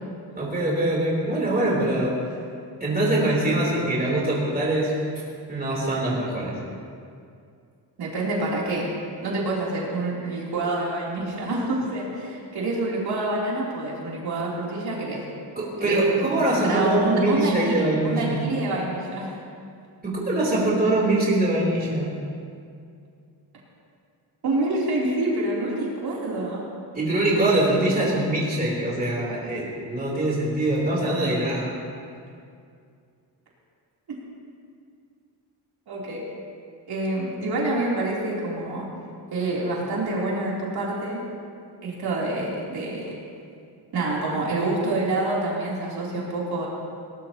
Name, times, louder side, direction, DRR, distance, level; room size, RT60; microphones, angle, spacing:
voice 1, 0.3-2.1 2.8-4.9 5.5-6.6 15.6-18.5 20.0-22.1 26.9-31.7, right 1 dB, 20° right, -5 dB, 3.5 m, -23 dB
voice 2, 8.0-8.9 9.2-15.2 15.8-19.3 24.4-26.6 35.9-36.2 36.9-38.9 39.3-41.2 41.8-43.1 43.9-46.7, right 2 dB, 65° right, -5 dB, 3.4 m, -27 dB
20.5 x 18.5 x 2.9 m, 2.4 s
wide cardioid pair, 160°, 41 cm